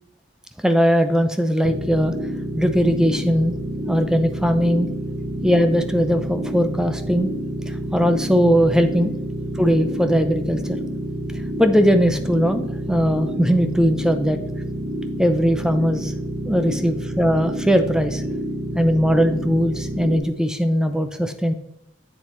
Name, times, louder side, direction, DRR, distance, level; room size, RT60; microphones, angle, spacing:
voice 1, 0.6-2.2 2.6-3.6 3.9-4.9 5.4-7.3 7.7-9.1 9.6-10.8 11.6-14.4 15.2-16.1 16.5-18.2 18.7-21.5, equal, 5° right, 8 dB, 0.5 m, -19 dB
sound 1, 1.6-20.2, right 1 dB, 30° right, 1.0 m, -28 dB
8.0 x 7.2 x 3.1 m, 0.81 s
head